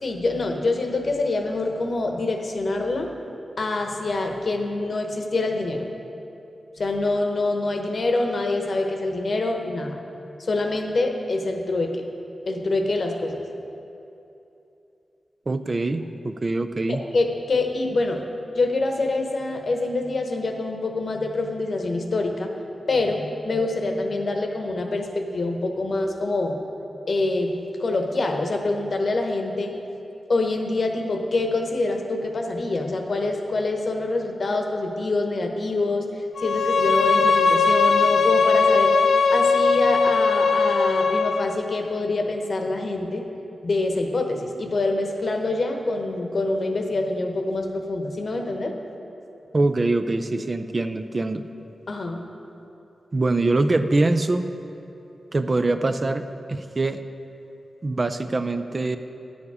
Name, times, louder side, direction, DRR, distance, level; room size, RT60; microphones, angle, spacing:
voice 1, 0.0-3.1 3.6-5.9 6.8-10.0 10.4-12.0 12.5-13.4 17.0-18.2 18.5-22.5 22.9-26.6 27.1-29.8 30.3-36.1 36.4-39.0 39.3-43.3 43.6-48.7 51.9-52.2, left 2 dB, 55° left, 3 dB, 0.9 m, -25 dB
voice 2, 15.5-17.0 49.5-51.4 53.1-54.4 55.3-56.2 56.5-57.0 57.8-59.0, right 2 dB, 35° right, 9 dB, 0.4 m, -23 dB
Bowed string instrument, 36.4-41.5, left 4 dB, 85° left, 0.4 m, -19 dB
10.5 x 7.2 x 4.8 m, 2.8 s
wide cardioid pair, 90°, 0 cm